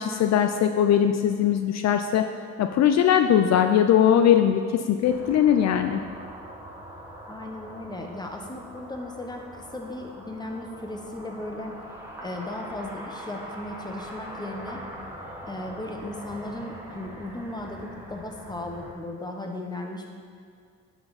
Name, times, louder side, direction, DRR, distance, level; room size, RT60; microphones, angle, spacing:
voice 1, 0.0-2.3 2.6-6.0, left 9 dB, 60° left, 7 dB, 0.5 m, -20 dB
sound 1, 5.0-18.9, equal, 10° right, 1.6 m, -42 dB
voice 2, 7.3-11.8 12.2-14.8 15.4-20.1, left 1 dB, 15° left, 2 dB, 1.1 m, -36 dB
11.0 x 5.7 x 4.1 m, 2.2 s
cardioid pair, 90°, 30 cm